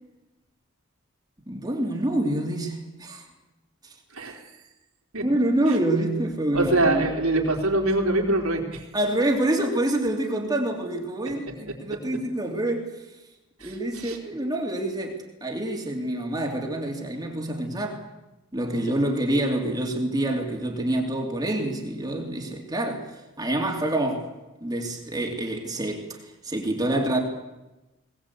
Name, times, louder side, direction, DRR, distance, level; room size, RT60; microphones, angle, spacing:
voice 1, 1.5-3.3 3.8-3.9 5.2-7.1 8.9-12.9 13.6-18.0 18.5-24.3 24.6-27.2, right 1 dB, 20° right, 2.8 m, -27 dB
voice 2, 6.5-8.8 13.6-14.2, right 2 dB, 85° right, 4.1 m, -24 dB
21.5 x 19.0 x 8.4 m
head